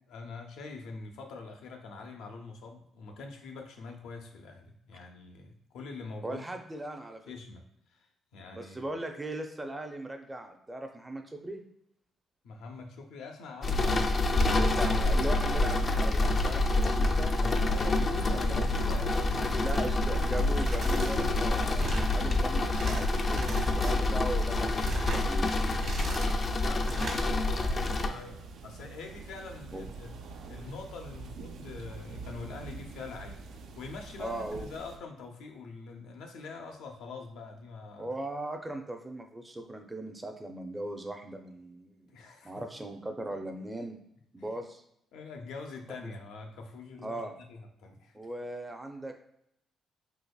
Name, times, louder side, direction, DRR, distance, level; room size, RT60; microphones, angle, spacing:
voice 1, 0.1-6.5 7.3-8.9 12.4-14.1 17.3-20.0 26.0-30.1 30.5-33.4 33.8-38.1 42.1-42.5 44.4-44.6 45.1-48.2, left 4 dB, 85° left, 3 dB, 0.6 m, -44 dB
voice 2, 6.2-7.2 8.5-11.6 14.5-17.3 18.5-18.6 19.6-25.5 29.7-29.8 34.2-34.7 38.0-42.2 42.4-44.0 44.3-44.8 46.0-46.1 47.0-47.3 48.1-49.1, right 1 dB, 15° right, 5 dB, 0.5 m, -38 dB
sound 1, 13.6-28.1, left 2 dB, 40° left, 0.4 m, -27 dB
sound 2, 18.1-35.0, right 4 dB, 75° right, 0.4 m, -45 dB
sound 3, 20.5-21.2 21.5-22.1 22.5-23.0 23.3-23.9 24.4-25.3 25.7-26.4 26.8-27.2, right 3 dB, 55° right, 1.1 m, -39 dB
4.0 x 2.8 x 2.3 m, 0.75 s
cardioid pair, 90°, 0 cm